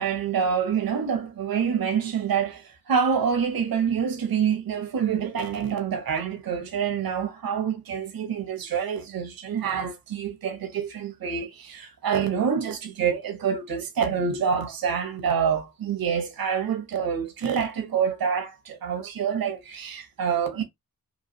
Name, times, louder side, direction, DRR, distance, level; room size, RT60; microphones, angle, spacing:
voice 1, 0.0-20.6, right 7 dB, 75° right, 0.8 m, -27 dB
3.1 x 2.3 x 2.6 m
cardioid pair, 55°, 35 cm